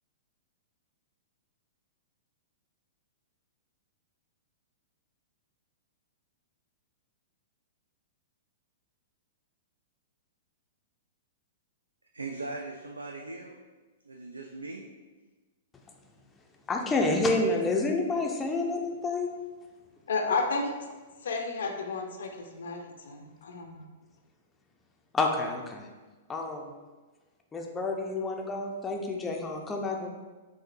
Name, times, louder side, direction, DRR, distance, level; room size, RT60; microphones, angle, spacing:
voice 1, 12.1-13.6 14.0-14.9, right 3 dB, 80° right, 2 dB, 0.3 m, -39 dB
voice 2, 16.7-19.4 25.1-25.9 26.3-26.7 27.5-30.1, left 2 dB, 15° left, 1 dB, 0.5 m, -29 dB
voice 3, 20.1-20.7 21.2-23.9, left 4 dB, 65° left, 3 dB, 0.5 m, -32 dB
5.7 x 2.6 x 2.5 m, 1.3 s
figure-of-eight pair, 105°, 0 cm